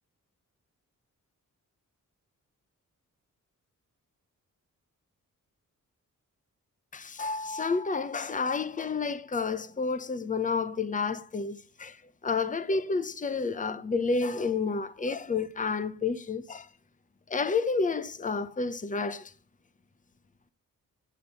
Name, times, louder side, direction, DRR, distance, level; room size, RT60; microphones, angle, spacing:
voice 1, 6.9-12.0 12.2-16.7 17.3-19.3, left 4 dB, 25° left, 0.8 m, -30 dB
8.8 x 7.3 x 8.0 m
wide cardioid pair, 105°, 33 cm